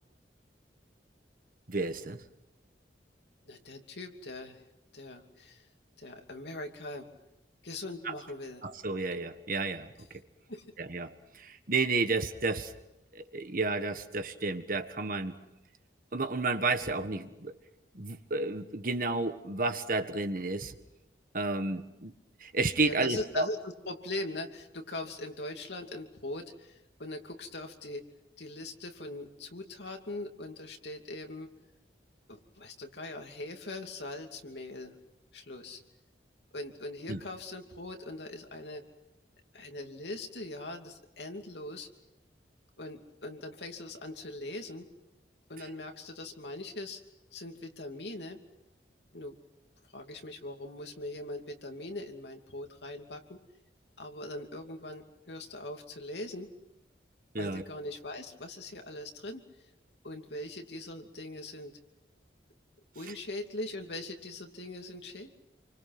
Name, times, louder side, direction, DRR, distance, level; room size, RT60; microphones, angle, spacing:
voice 1, 1.7-2.2 8.0-8.1 8.6-9.9 10.8-12.7 13.1-15.4 16.1-17.5 17.9-20.7 21.3-22.1 22.4-23.5 37.1-37.2 57.3-57.6, right 3 dB, 50° right, 8 dB, 1.6 m, -31 dB
voice 2, 3.5-4.6 4.9-5.7 6.0-7.1 7.6-8.6 10.5-10.6 22.8-28.0 28.4-31.5 32.3-35.0 35.3-35.8 36.5-38.8 39.5-41.9 42.8-44.9 45.5-47.0 47.3-48.4 49.1-49.4 49.9-53.4 54.0-56.5 57.4-59.4 60.0-61.7 62.9-65.3, left 2 dB, 75° left, 3 dB, 2.8 m, -41 dB
29.0 x 24.5 x 6.1 m, 0.90 s
head